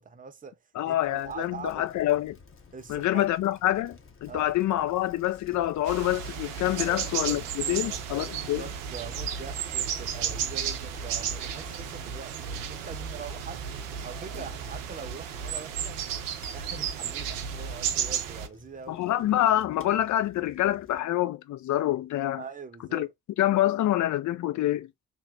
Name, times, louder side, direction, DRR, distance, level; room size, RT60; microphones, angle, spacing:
voice 1, 0.0-0.6 0.9-1.9 2.7-3.3 4.3-4.5 6.7-7.0 7.3-13.6 14.0-16.0 16.5-19.0 22.4-23.1, right 5 dB, 20° right, 0.7 m, -43 dB
voice 2, 0.7-2.4 2.9-8.6 18.9-22.4 22.9-23.1 23.4-24.9, left 13 dB, 50° left, 0.5 m, -26 dB
Bicycle, 1.0-21.0, left 4 dB, 35° left, 0.9 m, -52 dB
sound 1, 5.9-18.5, right 8 dB, 90° right, 0.5 m, -33 dB
3.1 x 2.1 x 3.9 m
hypercardioid pair, 45°, 37 cm